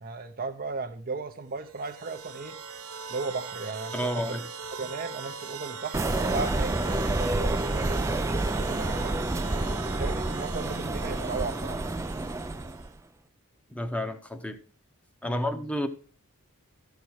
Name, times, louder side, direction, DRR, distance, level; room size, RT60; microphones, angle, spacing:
voice 1, 0.0-2.6 3.1-4.4 4.8-9.1 9.9-11.8 15.2-15.5, right 3 dB, 40° right, 0.7 m, -36 dB
sound 1, 1.6-12.9, right 5 dB, 75° right, 1.1 m, -40 dB
voice 2, 3.9-4.5 13.7-14.6 15.2-15.9, equal, 5° left, 0.9 m, -30 dB
sound 2, 5.9-12.9, right 2 dB, 15° right, 0.4 m, -29 dB
14.0 x 5.8 x 4.7 m
head